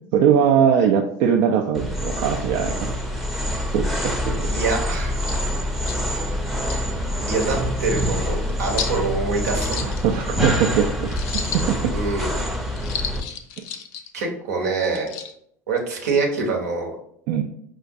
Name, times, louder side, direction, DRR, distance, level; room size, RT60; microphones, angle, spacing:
voice 1, 0.1-3.2 3.7-4.5 9.8-11.9 13.6-13.7 17.3-17.4, right 8 dB, 65° right, 2 dB, 0.3 m, -21 dB
sound 1, 1.7-13.2, equal, ahead, 0.6 m, -26 dB
voice 2, 4.5-5.3 7.3-9.8 11.9-12.3 14.1-15.1 15.7-16.9, right 4 dB, 80° right, 1 dB, 0.8 m, -25 dB
sound 2, 5.2-5.4 5.9-6.0 6.5-6.8 7.4-7.5 7.9-8.0 8.8-9.0 9.4-10.4 11.1-11.9 12.7-14.1 14.8-15.3, left 7 dB, 65° left, 0.4 m, -33 dB
4.7 x 2.1 x 2.6 m, 0.68 s
hypercardioid pair, 75°, 9 cm